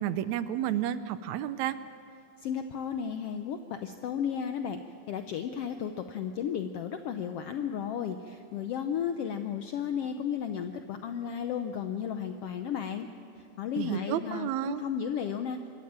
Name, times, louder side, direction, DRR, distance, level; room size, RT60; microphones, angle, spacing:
voice 1, 0.0-1.8 13.8-14.8, right 11 dB, 75° right, 13 dB, 1.8 m, -31 dB
voice 2, 2.4-4.8 5.1-13.1 13.4-15.6, left 8 dB, 80° left, 7 dB, 1.3 m, -34 dB
24.5 x 13.5 x 8.8 m, 2.5 s
omnidirectional pair, 3.6 m